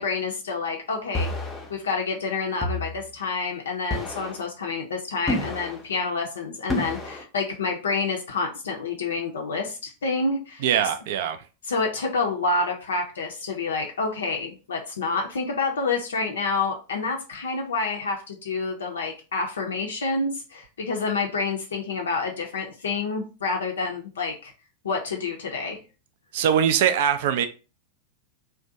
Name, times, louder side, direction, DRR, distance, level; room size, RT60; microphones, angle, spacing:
voice 1, 0.0-1.3 1.7-10.7 11.6-24.5 24.8-25.8, left 4 dB, 65° left, 0.4 m, -28 dB
sound 1, 1.1-1.7 2.6-3.0 3.9-4.4 5.3-5.8 6.7-7.2, left 1 dB, 15° left, 0.6 m, -29 dB
voice 2, 10.6-11.4 26.3-27.5, right 9 dB, 50° right, 0.3 m, -22 dB
2.5 x 2.2 x 2.5 m
figure-of-eight pair, 90°, 0 cm